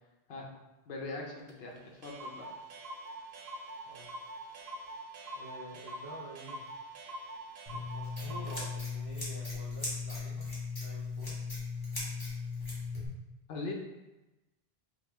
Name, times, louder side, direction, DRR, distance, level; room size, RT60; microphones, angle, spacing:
voice 1, 0.9-2.5 13.5-13.7, left 3 dB, 75° left, 0 dB, 1.0 m, -41 dB
Clock, 1.5-1.6 1.8-1.9 2.0-8.7, right 1 dB, 80° right, 0.9 m, -44 dB
voice 2, 5.4-6.6 7.9-10.5 10.8-11.4, equal, 30° right, -5 dB, 0.5 m, -48 dB
Scissors, 7.7-13.1, left 4 dB, 20° left, 1.3 m, -38 dB
4.8 x 2.1 x 3.4 m, 1.0 s
omnidirectional pair, 1.0 m